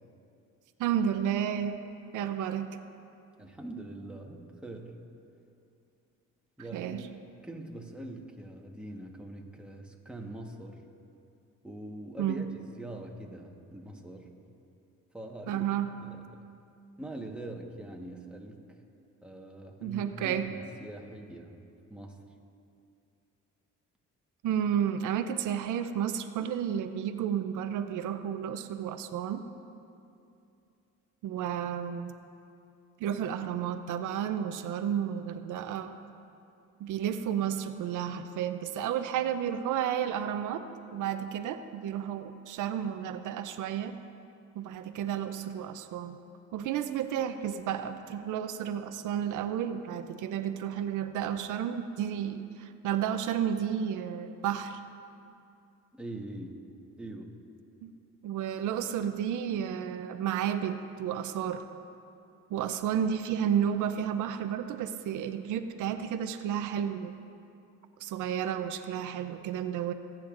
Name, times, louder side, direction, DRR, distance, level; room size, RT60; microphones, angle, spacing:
voice 1, 0.8-1.8 2.1-2.7 6.7-7.1 12.2-12.5 15.5-15.9 19.8-20.5 24.4-29.4 31.2-32.2 33.0-36.0 36.8-40.6 40.9-44.0 44.6-46.2 46.5-54.8 57.8-57.9 58.2-61.7 62.5-67.1 68.0-69.9, right 9 dB, 85° right, 9 dB, 0.6 m, -32 dB
voice 2, 3.4-5.0 6.6-7.1 7.4-10.9 11.6-14.3 15.1-15.7 16.0-16.4 17.0-18.6 19.2-21.5 21.9-22.2 55.9-56.6 57.0-57.3, right 1 dB, 5° right, 0 dB, 1.3 m, -43 dB
25.0 x 8.9 x 2.5 m, 2.6 s
cardioid pair, 90°, 30 cm